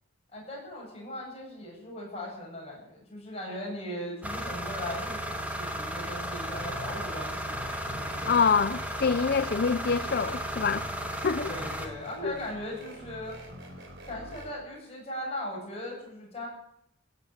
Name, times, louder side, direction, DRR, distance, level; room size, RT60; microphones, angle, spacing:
voice 1, 0.3-8.3 11.5-13.4 14.1-16.5, left 1 dB, 30° left, 7.7 m, -39 dB
sound 1, 4.2-11.9, equal, 5° right, 1.8 m, -35 dB
sound 2, 6.5-14.5, equal, 55° right, 4.2 m, -46 dB
voice 2, 8.3-11.5 12.2-12.3, left 5 dB, 50° left, 0.5 m, -26 dB
16.0 x 9.8 x 8.6 m
head